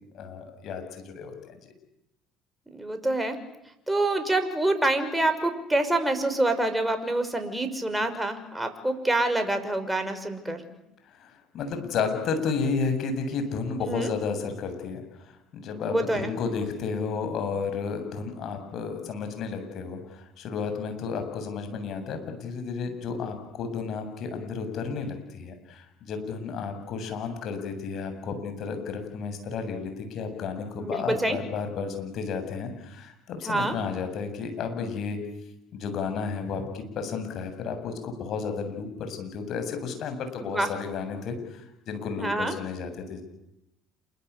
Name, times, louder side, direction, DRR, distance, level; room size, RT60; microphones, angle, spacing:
voice 1, 0.1-1.6 11.1-35.2 35.7-43.2, left 5 dB, 60° left, 7 dB, 7.6 m, -32 dB
voice 2, 2.7-3.4 3.9-10.6 13.8-14.1 15.9-16.3 30.8-31.4 33.5-33.8 40.4-40.7 42.2-42.5, right 2 dB, 10° right, 7 dB, 6.1 m, -26 dB
28.5 x 24.0 x 8.5 m, 0.84 s
hypercardioid pair, 65°, 0 cm